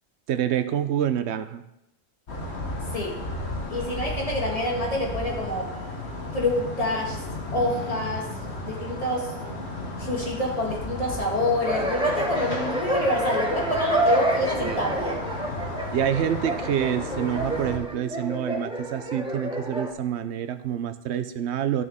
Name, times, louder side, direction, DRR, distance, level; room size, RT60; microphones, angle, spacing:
voice 1, 0.3-1.6 14.6-14.8 15.9-21.8, right 9 dB, 80° right, 11 dB, 0.9 m, -27 dB
sound 1, 2.3-17.8, left 1 dB, 75° left, 1.9 m, -34 dB
voice 2, 3.7-5.7 6.3-7.2 7.5-8.3 8.6-9.3 10.0-15.2, left 1 dB, 35° left, -1 dB, 1.9 m, -27 dB
sound 2, 11.6-19.9, right 1 dB, 5° right, 0.8 m, -28 dB
14.0 x 6.3 x 3.5 m, 0.88 s
omnidirectional pair, 1.1 m